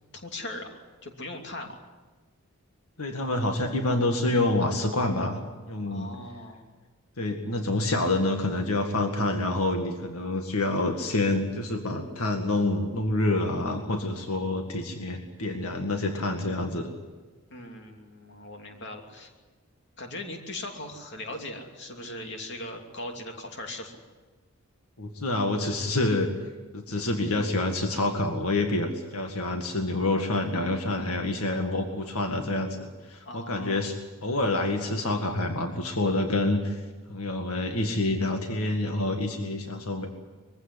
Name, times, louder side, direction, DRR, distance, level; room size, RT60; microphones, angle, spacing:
voice 1, 0.1-1.8 5.9-6.6 17.5-19.3 20.0-24.0 33.2-33.9, left 1 dB, 50° left, 3 dB, 2.9 m, -39 dB
voice 2, 3.0-6.1 7.2-16.9 25.0-26.3 26.7-34.0 34.2-36.8 37.1-40.1, left 2 dB, 80° left, 4 dB, 2.0 m, -27 dB
23.0 x 16.0 x 9.9 m, 1.3 s
head